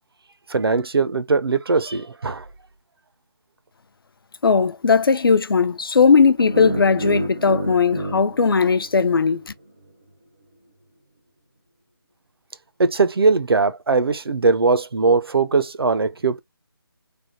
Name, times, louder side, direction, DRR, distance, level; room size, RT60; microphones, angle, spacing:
voice 1, 0.5-2.4 12.8-16.4, right 4 dB, 70° right, 0.7 m, -20 dB
voice 2, 4.4-9.5, left 5 dB, 65° left, 0.5 m, -18 dB
sound 1, 6.4-9.5, right 1 dB, 15° right, 0.3 m, -30 dB
3.4 x 2.2 x 4.1 m
figure-of-eight pair, 170°, 13 cm